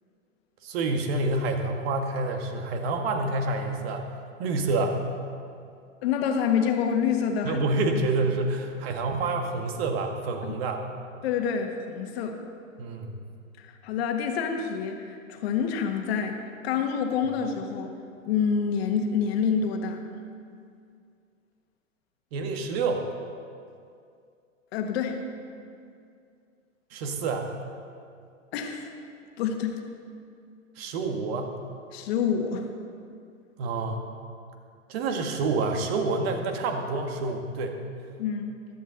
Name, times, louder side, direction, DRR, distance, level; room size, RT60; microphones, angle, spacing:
voice 1, 0.6-4.0 4.4-4.9 7.4-10.8 12.8-13.1 22.3-23.1 26.9-27.5 30.8-31.6 33.6-34.0 34.9-37.8, right 3 dB, 50° right, 4 dB, 1.7 m, -28 dB
voice 2, 6.0-7.6 10.4-10.6 11.2-12.4 13.6-17.9 18.2-20.0 24.7-25.3 28.5-28.9 29.4-29.8 31.9-32.7 38.2-38.6, left 7 dB, 50° left, 4 dB, 1.6 m, -27 dB
15.5 x 12.0 x 4.0 m, 2.4 s
hypercardioid pair, 120°, 40 cm